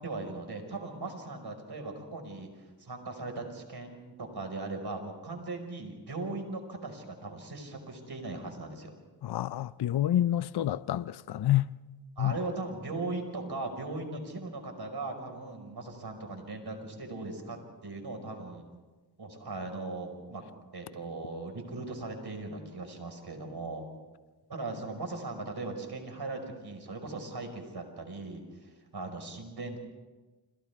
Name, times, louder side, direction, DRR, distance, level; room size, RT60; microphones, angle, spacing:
voice 1, 0.0-8.9 12.2-17.6 17.8-18.6 19.2-20.4 20.7-23.8 24.5-29.8, right 3 dB, 60° right, 5.2 m, -39 dB
voice 2, 9.2-11.7 12.2-12.3, left 13 dB, 60° left, 0.6 m, -28 dB
29.5 x 27.0 x 3.6 m
cardioid pair, 45°, 45 cm